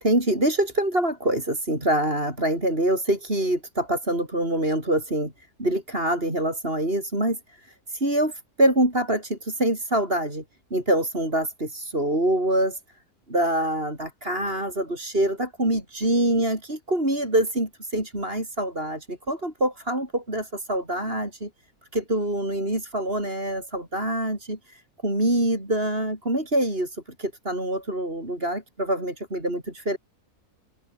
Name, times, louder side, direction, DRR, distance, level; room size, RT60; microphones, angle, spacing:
voice 1, 0.0-10.4 10.7-12.8 13.3-21.5 21.9-30.0, right 1 dB, 35° right, 7.4 m, -25 dB
omnidirectional pair, 1.7 m